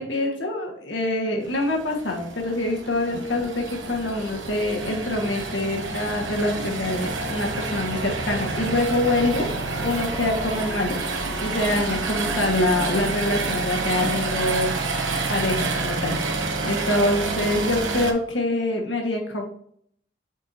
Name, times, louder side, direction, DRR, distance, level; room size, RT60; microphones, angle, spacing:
voice 1, 0.0-9.5 9.8-16.3 16.6-19.4, left 1 dB, 75° left, 1 dB, 1.5 m, -25 dB
sound 1, 1.4-18.1, right 3 dB, 90° right, 1.0 m, -28 dB
8.1 x 4.5 x 2.7 m, 0.64 s
head